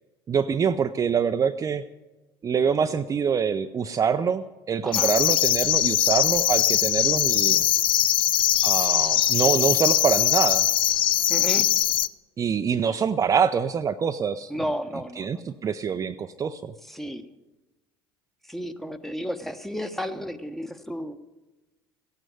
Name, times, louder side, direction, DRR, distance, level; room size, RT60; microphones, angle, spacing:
voice 1, 0.3-1.8 2.4-7.6 8.6-10.7 12.4-14.5 15.2-16.7, right 7 dB, 25° right, 8 dB, 0.6 m, -25 dB
sound 1, 4.9-12.1, left 12 dB, 45° left, 0.5 m, -21 dB
voice 2, 11.3-11.7 14.5-15.4 16.8-17.2 18.5-21.2, equal, ahead, 8 dB, 1.1 m, -32 dB
16.0 x 9.0 x 9.4 m, 1.1 s
figure-of-eight pair, 65°, 12 cm